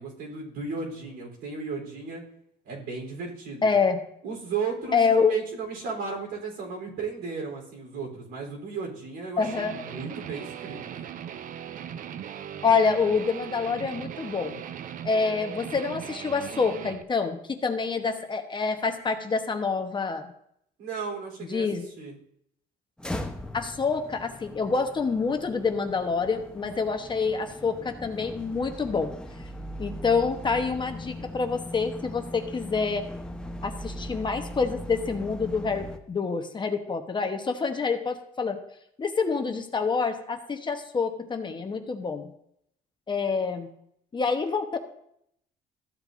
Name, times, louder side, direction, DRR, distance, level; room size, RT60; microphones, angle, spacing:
voice 1, 0.0-2.2 2.6-3.7 4.2-10.9 20.8-21.7 22.0-22.2, right 4 dB, 85° right, -1 dB, 3.8 m, -35 dB
voice 2, 3.6-4.0 4.9-5.3 9.4-9.8 12.6-14.6 15.0-20.3 21.5-21.9 23.5-29.1 29.8-33.0 33.6-38.6 39.0-42.3 43.1-43.7 44.1-44.8, left 5 dB, 25° left, 6 dB, 1.0 m, -27 dB
Guitar, 9.4-17.0, right 9 dB, 55° right, 0.6 m, -39 dB
sound 1, 23.0-36.0, left 1 dB, 5° left, 0.8 m, -39 dB
14.5 x 7.9 x 2.6 m, 0.72 s
cardioid pair, 110°, 17 cm